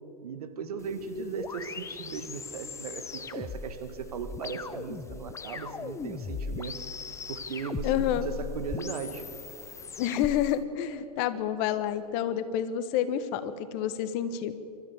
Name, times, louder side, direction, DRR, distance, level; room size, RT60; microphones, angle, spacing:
voice 1, 0.2-6.8 7.3-9.2, right 6 dB, 70° right, 8 dB, 2.1 m, -37 dB
sound 1, 0.8-10.5, left 5 dB, 15° left, 0.8 m, -39 dB
voice 2, 7.8-8.3 10.0-14.6, left 10 dB, 45° left, 12 dB, 1.5 m, -29 dB
29.5 x 13.5 x 7.3 m, 2.8 s
hypercardioid pair, 105°, 20 cm